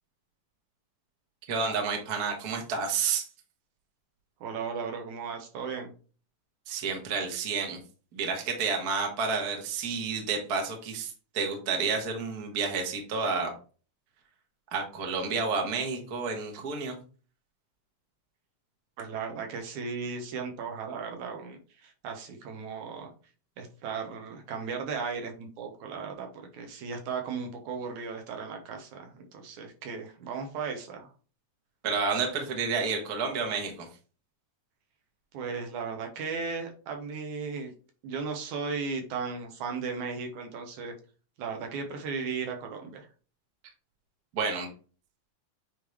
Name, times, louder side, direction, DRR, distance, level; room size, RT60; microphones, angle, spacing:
voice 1, 1.5-3.3 6.7-7.8 8.1-13.5 14.7-17.0 31.8-33.9 44.3-44.7, right 5 dB, 45° right, 2 dB, 1.2 m, -30 dB
voice 2, 4.4-5.9 19.0-23.1 23.6-31.1 35.3-37.7 38.0-40.9 41.4-43.1, right 5 dB, 70° right, 3 dB, 2.3 m, -36 dB
8.9 x 3.3 x 3.2 m, 0.37 s
omnidirectional pair, 3.7 m